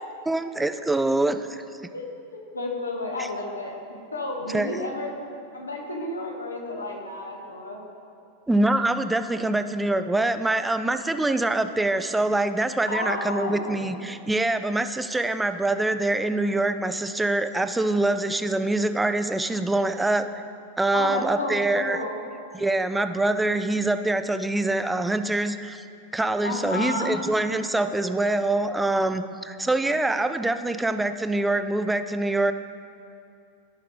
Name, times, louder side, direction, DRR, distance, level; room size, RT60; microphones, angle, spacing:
voice 1, 0.3-1.6 3.2-3.3 4.5-4.9 8.5-20.4 20.8-22.0 22.5-25.8 26.1-32.5, right 2 dB, 5° right, 9 dB, 0.3 m, -24 dB
voice 2, 2.3-5.1 5.5-7.8 12.9-14.0 20.9-22.3 26.4-27.2, left 2 dB, 80° left, 0 dB, 1.2 m, -31 dB
12.5 x 5.8 x 3.2 m, 2.5 s
figure-of-eight pair, 90°, 0 cm